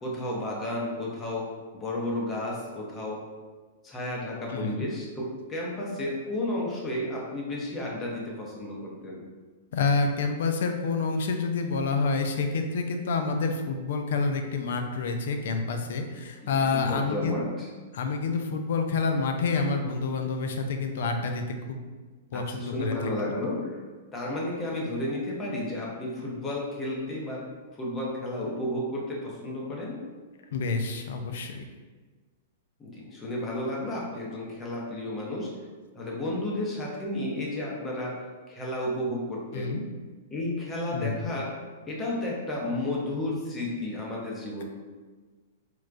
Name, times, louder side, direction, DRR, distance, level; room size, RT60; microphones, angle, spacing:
voice 1, 0.0-3.3 3.8-9.2 16.4-17.7 22.3-23.8 24.1-27.4 27.7-30.0 32.8-35.6 35.9-38.2 38.5-39.8 40.3-41.6 41.9-44.6, left 1 dB, 20° left, -3 dB, 0.7 m, -32 dB
voice 2, 4.5-4.9 9.7-17.4 17.9-21.8 22.3-23.1 30.5-31.6 39.5-39.8 40.9-41.3, left 4 dB, 70° left, 5 dB, 0.4 m, -28 dB
4.5 x 2.1 x 2.5 m, 1.4 s
hypercardioid pair, 150°, 0 cm